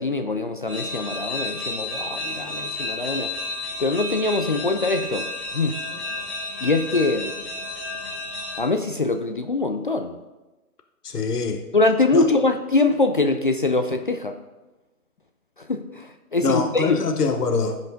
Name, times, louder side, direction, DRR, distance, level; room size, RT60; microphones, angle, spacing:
voice 1, 0.0-3.3 3.8-5.8 6.6-7.3 8.6-10.2 11.7-14.4 15.6-17.0, left 3 dB, 35° left, 6 dB, 0.4 m, -23 dB
sound 1, 0.7-8.6, left 2 dB, ahead, 2.2 m, -31 dB
voice 2, 11.0-11.6 12.1-12.3 16.4-17.8, left 4 dB, 85° left, 6 dB, 1.1 m, -23 dB
15.5 x 5.3 x 3.8 m, 1.1 s
hypercardioid pair, 150°, 45 cm